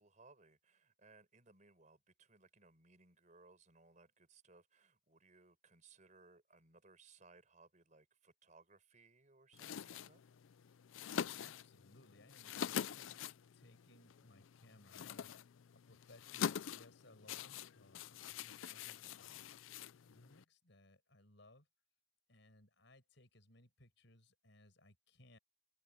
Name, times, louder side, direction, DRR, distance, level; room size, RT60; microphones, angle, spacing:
voice 1, 0.0-10.2, right 3 dB, 40° right, 4.9 m, -65 dB
sound 1, 9.5-20.4, left 8 dB, 80° left, 0.4 m, -45 dB
voice 2, 11.4-15.4 15.7-19.5 20.1-21.7 22.3-25.4, left 1 dB, 65° left, 6.3 m, -64 dB
open air
head